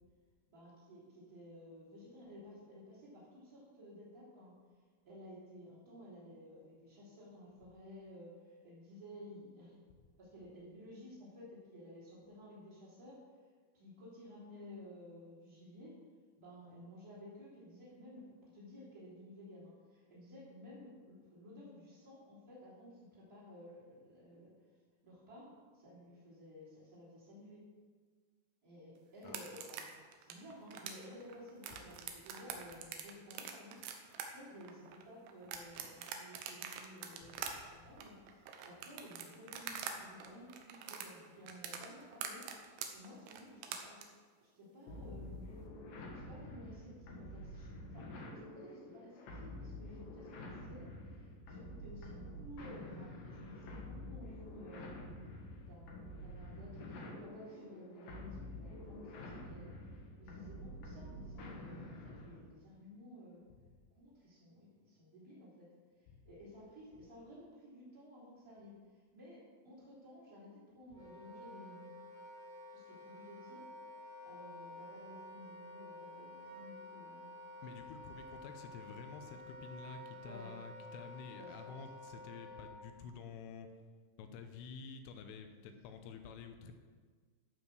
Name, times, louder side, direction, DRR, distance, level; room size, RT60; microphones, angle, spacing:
voice 1, 0.5-4.5 5.0-9.8 10.2-13.2 13.7-16.0 16.4-24.5 25.0-27.6 28.6-29.8 30.2-44.0 44.4-45.5 46.1-55.0 55.7-59.7 60.2-63.4 63.9-65.7 66.0-71.9 72.7-73.6 74.2-77.4 80.2-80.5 81.3-81.8, left 1 dB, 20° right, -11 dB, 2.8 m, -54 dB
sound 1, 29.2-39.9 40.2-44.0, right 8 dB, 80° right, 2.3 m, -44 dB
voice 2, 37.5-37.9 55.5-55.7 66.1-66.2 77.6-83.7 84.2-86.7, left 5 dB, 80° left, 6 dB, 3.2 m, -50 dB
sound 2, 44.9-62.5, left 1 dB, 60° left, 2.4 m, -48 dB
Wind instrument woodwind instrument, 70.9-82.8, left 1 dB, 55° right, 1.9 m, -51 dB
12.0 x 5.7 x 6.5 m, 1.5 s
omnidirectional pair, 6.0 m